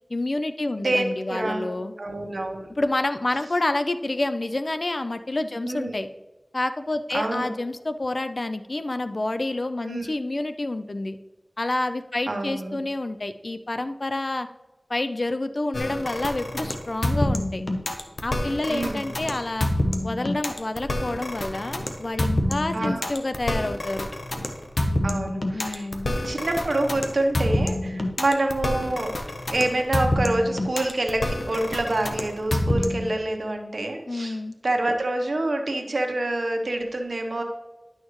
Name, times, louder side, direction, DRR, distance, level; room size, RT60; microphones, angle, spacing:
voice 1, 0.1-1.9 2.8-6.1 6.5-11.2 11.6-14.5 14.9-17.6 18.2-19.7 20.0-24.1 25.5-26.1 34.1-34.5, left 2 dB, 60° left, 10 dB, 0.4 m, -28 dB
voice 2, 0.8-2.7 5.6-5.9 7.1-7.5 9.8-10.1 12.3-12.8 18.7-19.1 22.7-23.1 25.0-25.9 26.2-29.1 29.5-34.4 34.6-37.4, right 2 dB, 80° right, 3 dB, 1.0 m, -27 dB
sound 1, 15.7-33.1, left 1 dB, 85° left, 0.9 m, -27 dB
11.0 x 6.4 x 3.1 m, 1.1 s
wide cardioid pair, 55°, 0 cm